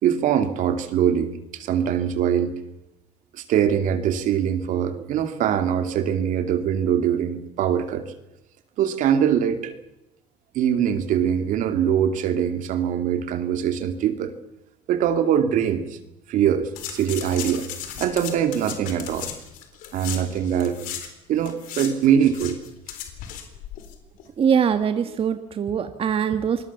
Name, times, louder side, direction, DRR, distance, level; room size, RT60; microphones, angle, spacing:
voice 1, 0.0-2.6 3.3-8.1 8.8-9.7 10.5-14.3 14.9-16.0 16.3-17.7 18.0-19.3 19.9-20.9 21.3-22.6, right 9 dB, 70° right, 8 dB, 2.6 m, -22 dB
sound 1, 16.8-21.1 21.4-23.9 24.2-24.3, left 10 dB, 80° left, 3.9 m, -36 dB
voice 2, 24.4-26.7, right 7 dB, 45° right, 8 dB, 1.5 m, -22 dB
26.0 x 20.5 x 7.2 m, 0.88 s
cardioid pair, 105°, 14 cm